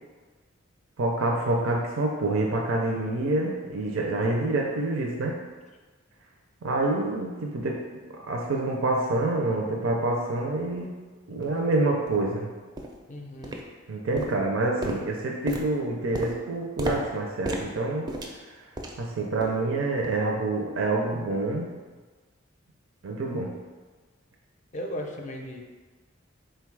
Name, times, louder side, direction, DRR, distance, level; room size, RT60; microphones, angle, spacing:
voice 1, 1.0-5.4 6.6-7.8 8.3-11.0 11.3-12.5 13.9-18.1 19.0-21.7 23.0-23.5, right 2 dB, 75° right, -1 dB, 0.5 m, -27 dB
sound 1, 10.8-10.9 11.4-11.5 12.1-12.2 12.8-13.1 13.4-13.9 14.2-19.1 19.4-19.7 20.0-20.2 20.8-20.9, equal, 20° right, 0.4 m, -36 dB
voice 2, 13.1-13.6 24.7-25.6, equal, 35° left, 2 dB, 0.5 m, -36 dB
3.8 x 2.3 x 4.5 m, 1.4 s
head